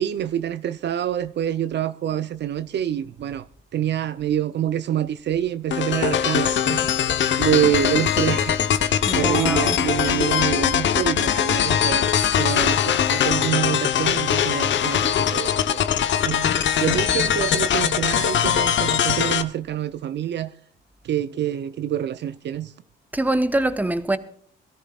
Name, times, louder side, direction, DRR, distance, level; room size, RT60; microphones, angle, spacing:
voice 1, 0.0-3.5 3.7-8.6 8.8-12.1 12.4-15.9 16.2-20.5 21.0-22.7, right 10 dB, 55° right, 0.6 m, -26 dB
sound 1, 5.7-19.4, left 9 dB, 60° left, 1.0 m, -21 dB
voice 2, 9.0-9.8 23.1-24.2, right 1 dB, 10° right, 1.0 m, -24 dB
22.5 x 13.5 x 2.4 m
cardioid pair, 95°, 21 cm